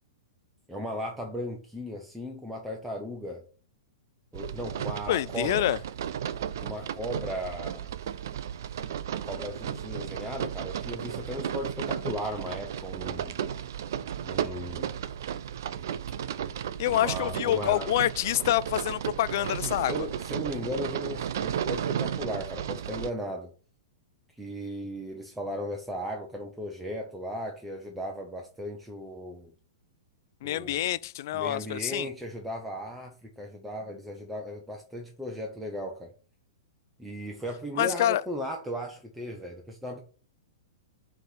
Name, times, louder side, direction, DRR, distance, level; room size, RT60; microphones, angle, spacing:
voice 1, 0.7-3.4 4.3-5.7 6.6-7.9 9.1-13.4 14.2-14.9 16.9-17.9 19.6-23.5 24.3-29.5 30.4-30.9 31.3-36.1 37.0-40.0, equal, 5° right, 0.8 m, -36 dB
sound 1, 4.3-23.1, right 9 dB, 55° right, 0.4 m, -34 dB
voice 2, 5.1-5.8 16.8-20.1 30.4-32.1 37.8-38.2, left 13 dB, 50° left, 0.3 m, -27 dB
6.4 x 3.2 x 5.6 m
figure-of-eight pair, 105°, 2 cm